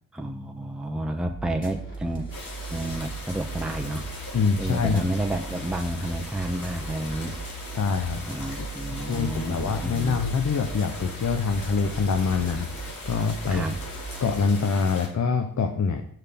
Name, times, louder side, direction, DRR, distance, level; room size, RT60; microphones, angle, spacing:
voice 1, 0.1-2.3 2.7-4.1 4.6-7.4 8.3-10.2 13.5-13.7, right 1 dB, ahead, 3 dB, 0.9 m, -30 dB
sound 1, 1.2-14.5, right 4 dB, 35° left, 2.6 m, -38 dB
sound 2, 1.9-3.0, left 1 dB, 15° left, 1.6 m, -51 dB
sound 3, 2.3-15.1, left 2 dB, 65° left, 2.5 m, -40 dB
voice 2, 4.3-5.1 7.7-8.3 8.6-13.7 14.2-16.0, left 5 dB, 50° left, 6 dB, 0.8 m, -25 dB
6.7 x 5.8 x 3.6 m, 0.63 s
cardioid pair, 50°, 37 cm